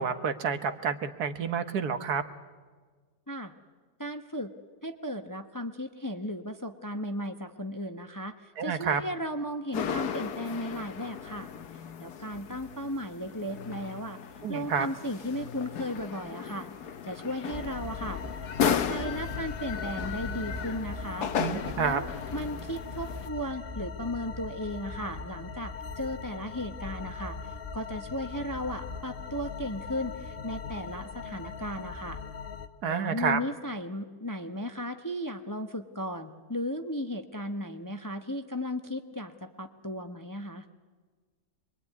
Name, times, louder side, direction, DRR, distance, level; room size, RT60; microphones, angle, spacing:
voice 1, 0.0-2.2 8.6-9.0 14.4-14.9 21.4-22.0 32.8-33.4, right 6 dB, 75° right, 9 dB, 1.8 m, -29 dB
voice 2, 4.0-4.5 4.8-11.5 12.0-14.2 14.5-16.7 17.0-18.2 18.6-21.3 21.8-32.2 32.8-40.6, equal, 15° left, 7 dB, 0.9 m, -35 dB
sound 1, 9.7-23.3, left 8 dB, 75° left, 1.6 m, -35 dB
sound 2, 17.5-32.7, left 4 dB, 40° left, 1.4 m, -39 dB
26.5 x 22.0 x 9.5 m, 1.5 s
omnidirectional pair, 1.7 m